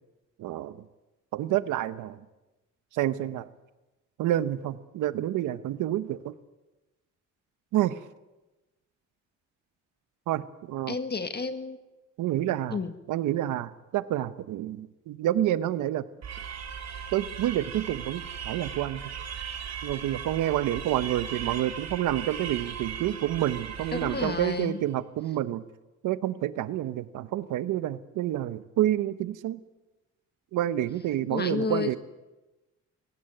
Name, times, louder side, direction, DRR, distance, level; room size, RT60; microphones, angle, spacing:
voice 1, 0.4-0.9 1.3-2.2 2.9-3.5 4.2-6.3 7.7-8.0 10.3-11.0 12.2-12.8 13.1-16.1 17.1-19.0 19.8-25.6 26.0-29.6 30.5-32.0, right 13 dB, 85° right, 14 dB, 1.1 m, -28 dB
voice 2, 10.9-11.8 12.7-12.9 23.9-24.8 31.3-32.0, left 5 dB, 35° left, 9 dB, 1.6 m, -31 dB
sound 1, 16.2-24.8, right 7 dB, 60° right, 3.2 m, -38 dB
22.5 x 17.5 x 9.0 m, 1.1 s
cardioid pair, 90°, 30 cm